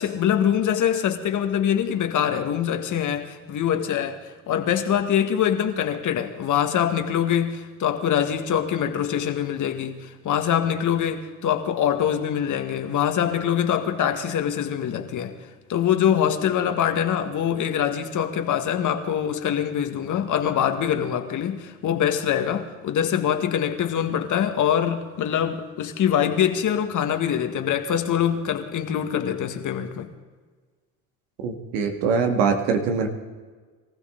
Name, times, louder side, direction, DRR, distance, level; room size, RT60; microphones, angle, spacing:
voice 1, 0.0-4.2 4.5-15.3 15.7-30.1, left 9 dB, 55° left, 1.8 m, -24 dB
voice 2, 31.4-33.1, right 5 dB, 85° right, 2.1 m, -23 dB
23.5 x 15.0 x 3.9 m
supercardioid pair, 70°, 37 cm